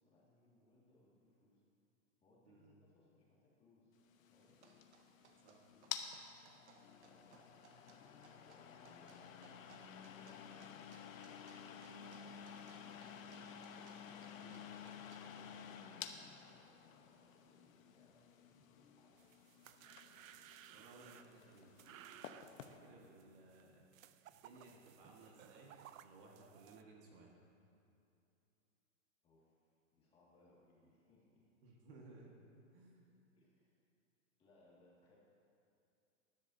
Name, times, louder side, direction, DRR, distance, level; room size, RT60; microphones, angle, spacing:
voice 1, 0.0-1.6 2.2-4.0 4.3-4.6 7.0-19.2 22.7-23.3 29.2-31.5 33.3-33.8 34.4-35.2, left 2 dB, 15° left, -6 dB, 2.0 m, -70 dB
voice 2, 2.5-2.8 5.4-5.6 14.4-14.6 20.7-21.7 22.7-23.9 24.3-25.8 26.0-27.4 31.6-32.4 32.7-33.0, right 3 dB, 45° right, -1 dB, 1.7 m, -60 dB
sound 1, 4.1-22.8, left 8 dB, 80° left, 1.1 m, -53 dB
sound 2, 4.4-15.2, right 5 dB, 60° right, 1.1 m, -67 dB
sound 3, 19.2-26.8, right 10 dB, 85° right, 0.6 m, -60 dB
20.0 x 10.5 x 2.7 m, 2.6 s
hypercardioid pair, 160°, 39 cm